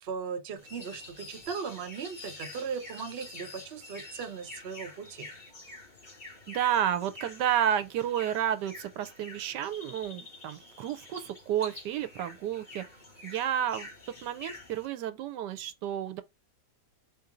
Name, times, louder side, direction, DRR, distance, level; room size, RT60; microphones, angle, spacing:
voice 1, 0.0-5.3, right 6 dB, 55° right, 0.7 m, -38 dB
sound 1, 0.6-14.9, left 2 dB, 30° left, 1.8 m, -47 dB
voice 2, 6.5-12.8 13.2-13.9 14.2-16.2, right 10 dB, 80° right, 1.2 m, -31 dB
4.4 x 2.6 x 3.7 m
omnidirectional pair, 1.8 m